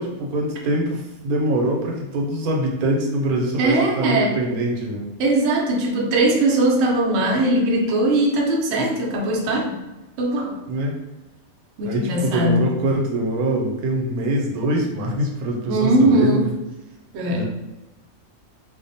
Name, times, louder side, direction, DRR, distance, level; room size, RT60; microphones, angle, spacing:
voice 1, 0.0-5.1 10.7-11.0 11.8-16.5 17.3-17.4, right 1 dB, 85° right, 0 dB, 1.1 m, -24 dB
voice 2, 3.6-4.4 5.2-9.8 10.2-10.6 11.8-12.7 15.7-16.5 17.1-17.4, right 1 dB, 65° right, -1 dB, 0.7 m, -20 dB
2.5 x 2.0 x 2.6 m, 1.0 s
omnidirectional pair, 1.5 m